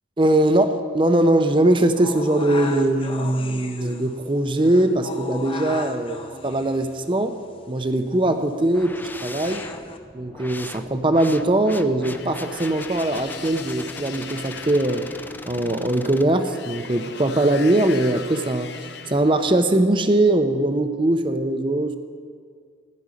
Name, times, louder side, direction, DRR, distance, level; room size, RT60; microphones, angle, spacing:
voice 1, 0.2-7.3 7.7-9.6 10.1-15.1 15.5-18.7 19.1-22.0, right 1 dB, 25° right, 8 dB, 0.7 m, -21 dB
sound 1, 2.0-10.0, left 3 dB, 30° left, 0.8 m, -38 dB
sound 2, 8.7-16.2, left 2 dB, 10° left, 0.3 m, -40 dB
sound 3, 12.0-19.7, left 6 dB, 60° left, 0.7 m, -39 dB
15.0 x 6.2 x 9.8 m, 2.1 s
head